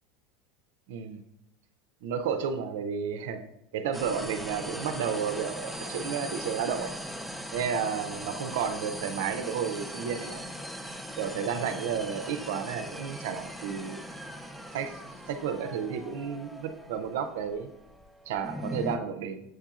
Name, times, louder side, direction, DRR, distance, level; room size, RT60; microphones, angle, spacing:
voice 1, 0.9-1.2 2.0-3.4 3.7-6.9 7.5-10.4 11.2-14.0 14.7-15.0 15.3-17.7 18.3-19.4, right 7 dB, 80° right, 8 dB, 0.4 m, -32 dB
sound 1, 3.9-19.0, equal, ahead, 0.5 m, -40 dB
7.7 x 2.8 x 2.4 m, 0.81 s
hypercardioid pair, 100°, 0 cm